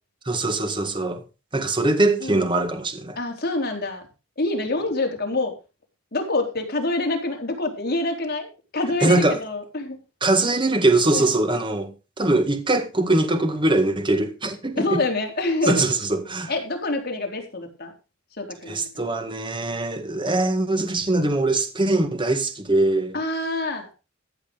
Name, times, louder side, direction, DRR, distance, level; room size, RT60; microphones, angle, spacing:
voice 1, 0.3-1.2 1.5-3.2 9.0-9.4 10.2-15.0 15.6-16.5 18.6-23.2, right 2 dB, 25° right, 1.8 m, -22 dB
voice 2, 3.2-4.1 4.4-5.5 6.1-8.5 8.7-10.0 11.1-11.3 14.8-15.9 16.5-17.9 18.4-19.0 23.1-23.9, left 2 dB, 45° left, 3.8 m, -26 dB
14.5 x 8.2 x 5.2 m
head